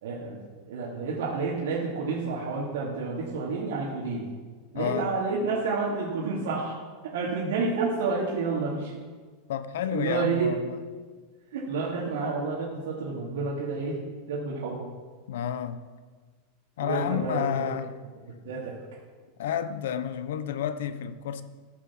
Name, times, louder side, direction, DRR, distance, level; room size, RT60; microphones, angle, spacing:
voice 1, 0.0-0.4 0.6-4.3 4.7-6.7 7.1-8.9 9.9-10.6 11.5-14.0 14.3-14.8 16.8-17.7 18.4-18.8, right 4 dB, 90° right, 2.7 m, -29 dB
voice 2, 4.7-5.1 9.5-10.8 15.3-15.8 16.8-17.9 19.4-21.4, left 9 dB, 80° left, 0.9 m, -30 dB
13.5 x 7.4 x 7.3 m
supercardioid pair, 165°, 0 cm